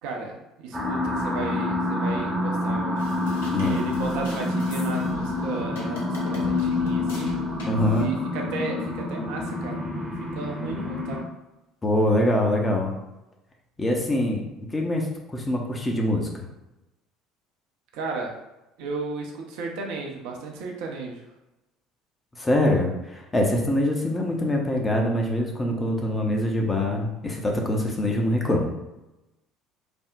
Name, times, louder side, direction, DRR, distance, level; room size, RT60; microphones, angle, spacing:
voice 1, 0.0-3.0 3.5-7.3 7.9-11.2 17.9-18.4 18.8-21.2, right 4 dB, 60° right, 0 dB, 0.5 m, -34 dB
sound 1, 0.7-11.2, left 2 dB, 15° right, 0.7 m, -28 dB
sound 2, 3.0-8.0, left 3 dB, 70° left, 0.6 m, -38 dB
voice 2, 3.5-3.8 7.7-8.1 11.8-13.0 13.8-14.4 14.7-15.1 15.3-16.4 22.4-28.7, left 1 dB, 20° left, 0 dB, 0.6 m, -24 dB
3.4 x 2.0 x 2.5 m, 0.95 s
figure-of-eight pair, 60°, 0 cm